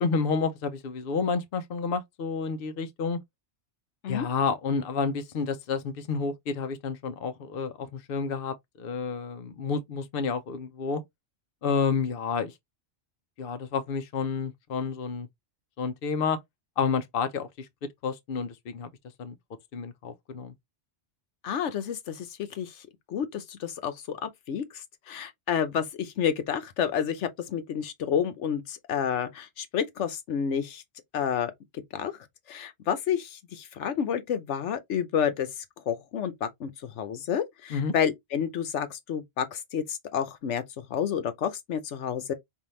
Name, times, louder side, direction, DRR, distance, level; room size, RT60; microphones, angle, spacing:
voice 1, 0.0-3.2 4.1-11.0 11.6-12.5 13.4-15.3 15.8-16.4 16.8-17.7 18.0-18.9 19.2-19.4 19.7-20.5 37.7-37.9, left 5 dB, 60° left, 0.8 m, -30 dB
voice 2, 21.4-22.7 23.1-30.8 31.1-32.1 32.5-35.5 35.9-40.6 40.9-42.3, left 8 dB, 85° left, 1.1 m, -30 dB
5.4 x 2.7 x 3.1 m
omnidirectional pair, 1.2 m